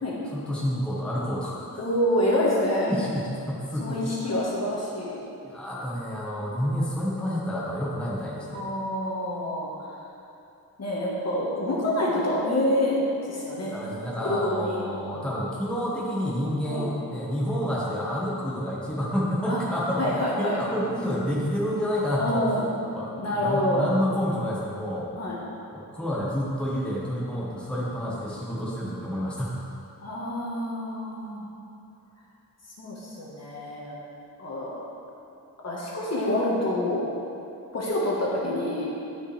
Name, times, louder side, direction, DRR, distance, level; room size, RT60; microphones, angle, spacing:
voice 1, 0.3-1.8 2.9-4.1 5.4-8.7 13.7-20.1 20.4-22.6 23.0-25.1 25.7-29.6, equal, 5° left, -6 dB, 1.4 m, -29 dB
voice 2, 1.8-2.9 3.8-5.1 8.5-9.9 10.8-13.0 13.3-13.8 14.2-14.8 16.6-16.9 19.5-19.6 20.0-20.6 22.2-22.7 23.2-23.9 25.1-25.4 30.0-31.4 32.8-33.9 34.4-34.7 35.6-37.0 37.7-38.9, left 1 dB, 45° left, -5 dB, 1.6 m, -27 dB
12.0 x 5.2 x 3.4 m, 2.8 s
wide cardioid pair, 110°, 36 cm